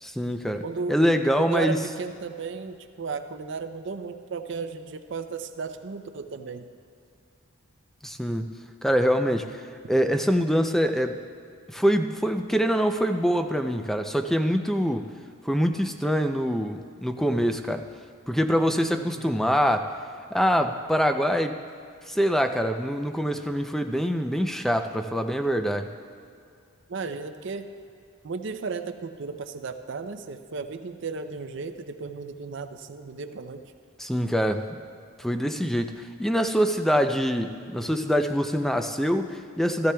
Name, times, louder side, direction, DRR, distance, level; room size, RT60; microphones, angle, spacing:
voice 1, 0.0-0.6 0.9-1.8 8.0-11.2 11.7-15.1 15.4-17.8 18.3-19.9 20.3-21.6 22.1-25.9 34.0-34.8 35.2-39.9, equal, ahead, 6 dB, 0.4 m, -24 dB
voice 2, 0.6-1.0 1.4-6.7 18.9-19.4 26.9-27.7 28.2-33.6, right 4 dB, 60° right, 8 dB, 0.5 m, -34 dB
16.5 x 13.5 x 2.3 m, 2.3 s
head